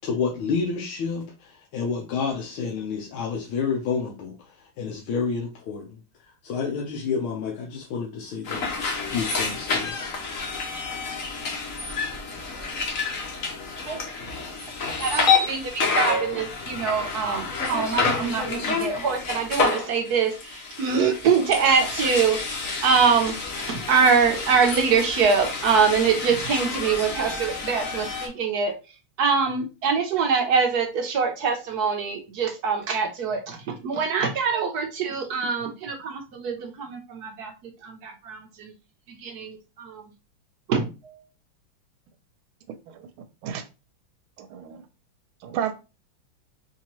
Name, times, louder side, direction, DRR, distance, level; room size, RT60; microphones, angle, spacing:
voice 1, 0.0-6.0 6.4-8.8 9.1-10.0, left 5 dB, 80° left, 1.6 m, -29 dB
sound 1, 8.4-28.3, left 4 dB, 55° left, 1.0 m, -29 dB
voice 2, 15.0-22.4 22.8-23.4 23.7-28.7 29.2-37.5 37.8-38.7 39.1-40.0 40.7-41.2, right 5 dB, 70° right, 1.0 m, -24 dB
voice 3, 44.4-44.8 45.4-45.7, right 9 dB, 90° right, 1.4 m, -31 dB
4.4 x 2.8 x 2.9 m
omnidirectional pair, 2.2 m